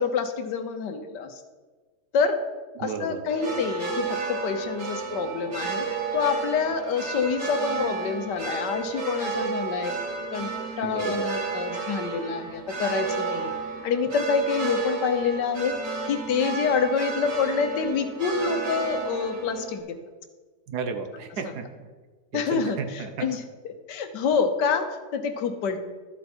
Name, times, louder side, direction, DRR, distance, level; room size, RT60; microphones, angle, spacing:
voice 1, 0.0-1.4 2.1-2.4 2.8-5.9 6.1-10.0 10.3-10.5 10.8-13.5 13.8-15.8 16.1-19.8 22.3-23.4 23.9-25.8, left 6 dB, 80° left, 8 dB, 1.5 m, -27 dB
voice 2, 2.8-3.2 10.8-11.3 20.7-21.9 22.3-23.3, right 5 dB, 70° right, 7 dB, 1.4 m, -33 dB
sound 1, 3.3-19.8, right 4 dB, 85° right, 2.3 m, -32 dB
13.0 x 7.7 x 4.4 m, 1.4 s
omnidirectional pair, 1.8 m